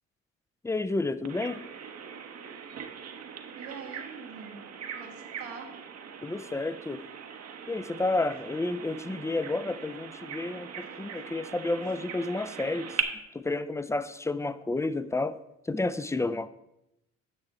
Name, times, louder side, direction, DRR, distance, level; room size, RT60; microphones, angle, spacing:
voice 1, 0.6-1.6 6.2-7.0 7.7-13.0 13.3-15.4 15.6-16.5, left 2 dB, 10° left, 14 dB, 0.4 m, -31 dB
Bird vocalization bird call bird song, 1.3-13.0, right 7 dB, 55° right, 1.0 m, -40 dB
voice 2, 3.5-5.7, right 6 dB, 85° right, -1 dB, 1.8 m, -44 dB
9.1 x 6.1 x 4.2 m, 0.86 s
supercardioid pair, 65°, 31 cm